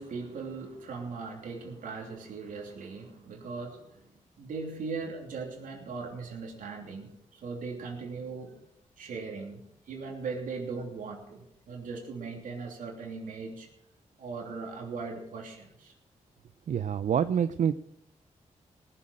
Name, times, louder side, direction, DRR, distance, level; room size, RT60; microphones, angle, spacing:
voice 1, 0.0-4.1 4.4-8.6 9.0-13.7 14.2-15.9, right 4 dB, 85° right, 1 dB, 2.9 m, -39 dB
voice 2, 16.7-17.7, right 8 dB, 65° right, 12 dB, 0.5 m, -26 dB
18.5 x 7.7 x 5.0 m, 0.77 s
cardioid pair, 65°, 14 cm